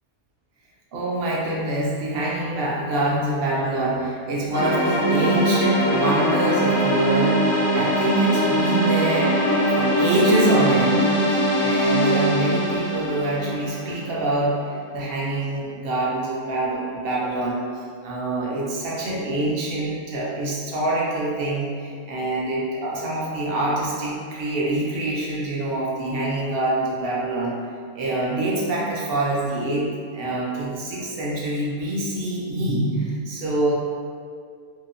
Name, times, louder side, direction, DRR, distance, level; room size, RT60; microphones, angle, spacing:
voice 1, 0.9-9.4 9.7-14.5 14.9-17.6 18.0-27.5 27.9-29.9 30.1-33.7, right 1 dB, 60° right, -5 dB, 0.6 m, -25 dB
sound 1, 4.5-14.5, right 1 dB, 70° left, 0.9 m, -21 dB
2.8 x 2.0 x 2.4 m, 2.1 s
omnidirectional pair, 1.4 m